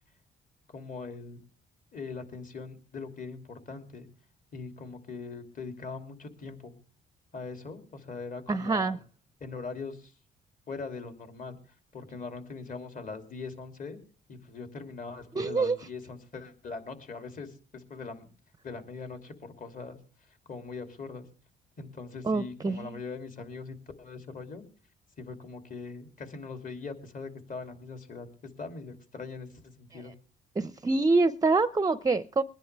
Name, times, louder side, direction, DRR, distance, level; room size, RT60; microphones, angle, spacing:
voice 1, 0.7-1.4 1.9-4.1 4.5-6.8 7.3-9.0 9.4-10.1 10.7-11.6 11.9-14.0 14.3-18.3 18.6-20.0 20.5-21.3 21.8-24.6 25.2-28.3 28.6-30.1, left 4 dB, 40° left, 6 dB, 2.9 m, -41 dB
voice 2, 8.5-9.0 15.4-15.8 22.3-23.0 29.9-30.0 30.6-32.4, right 3 dB, 20° right, 13 dB, 0.6 m, -26 dB
22.5 x 10.5 x 3.4 m, 0.38 s
cardioid pair, 90°, 20 cm